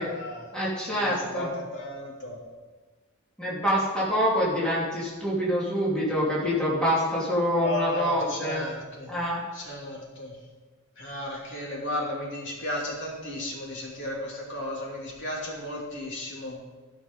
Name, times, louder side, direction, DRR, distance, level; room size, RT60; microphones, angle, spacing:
voice 1, 0.0-0.5 0.9-2.4 7.6-9.1 9.5-10.3 11.0-16.6, left 1 dB, 55° left, -3 dB, 2.9 m, -34 dB
voice 2, 0.5-1.5 3.4-8.6 9.1-9.4, equal, 5° left, -7 dB, 2.7 m, -26 dB
13.5 x 5.8 x 5.3 m, 1.3 s
head